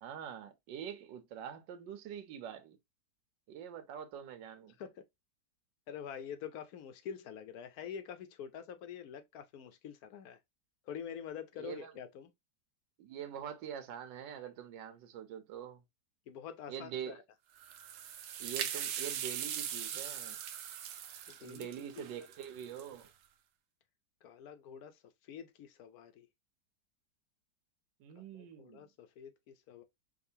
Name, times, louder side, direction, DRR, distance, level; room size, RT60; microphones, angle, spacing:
voice 1, 0.0-2.8 3.5-4.7 11.6-11.9 13.0-15.8 16.7-17.2 18.4-20.4 21.4-23.1 28.0-28.9, right 9 dB, 85° right, 1.4 m, -45 dB
voice 2, 5.9-10.4 10.9-12.3 16.3-17.2 21.3-21.7 22.0-22.1 24.2-25.0 25.3-26.3 28.2-29.8, left 8 dB, 70° left, 1.0 m, -46 dB
sound 1, 17.6-23.1, right 9 dB, 70° right, 0.8 m, -40 dB
5.2 x 2.4 x 2.7 m
omnidirectional pair, 1.9 m